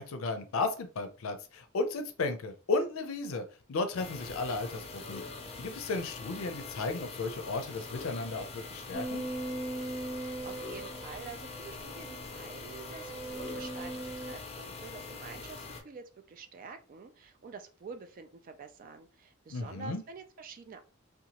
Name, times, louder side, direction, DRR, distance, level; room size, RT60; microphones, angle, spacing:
voice 1, 0.0-5.2 5.6-9.3 19.5-20.0, left 3 dB, 90° left, 8 dB, 0.5 m, -34 dB
sound 1, 4.0-15.8, left 3 dB, 30° left, 0.5 m, -44 dB
sound 2, 8.9-14.3, right 2 dB, 10° left, 0.8 m, -40 dB
voice 2, 10.2-20.8, right 5 dB, 40° right, 7 dB, 0.3 m, -47 dB
2.8 x 2.2 x 2.8 m, 0.36 s
head